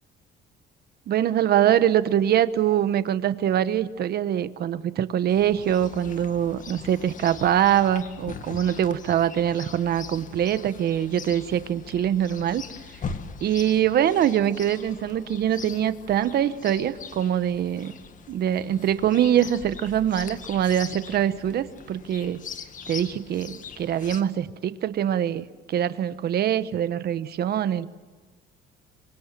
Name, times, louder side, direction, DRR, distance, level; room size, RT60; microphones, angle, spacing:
voice 1, 1.1-12.6 13.4-17.9 18.3-22.4 22.9-27.9, right 10 dB, 50° right, 13 dB, 1.2 m, -23 dB
Chirp tweet, 5.3-24.2, left 6 dB, 40° left, 2.0 m, -41 dB
27.0 x 25.5 x 7.5 m, 1.3 s
cardioid pair, 150°, 20 cm